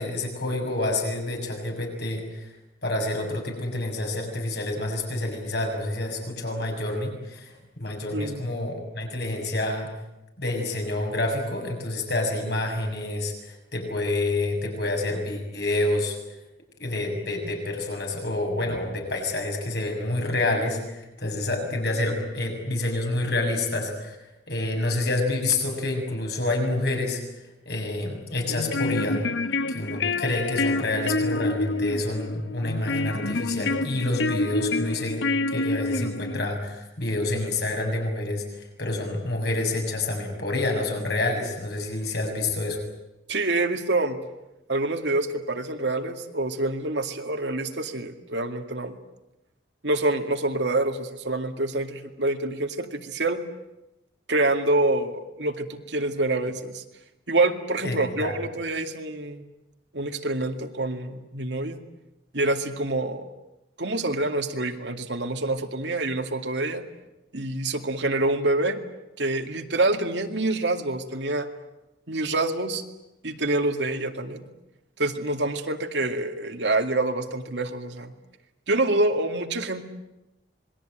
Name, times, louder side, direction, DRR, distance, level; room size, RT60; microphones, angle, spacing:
voice 1, 0.0-2.5 2.8-9.9 10.4-16.2 16.8-24.2 24.5-27.2 27.7-29.2 29.7-35.2 35.5-42.8 57.8-58.3, left 2 dB, 60° left, 2 dB, 6.8 m, -28 dB
voice 2, 8.1-8.5 43.3-44.2 44.7-49.0 49.8-53.4 54.3-56.8 57.3-59.5 59.9-61.8 62.3-63.2 63.8-66.8 67.3-68.8 69.2-71.5 72.1-72.8 73.2-74.5 75.0-78.1 78.7-79.8, right 2 dB, 70° right, 6 dB, 2.3 m, -26 dB
sound 1, 28.4-36.5, left 2 dB, 75° left, 1.0 m, -27 dB
26.5 x 21.0 x 9.1 m, 0.94 s
head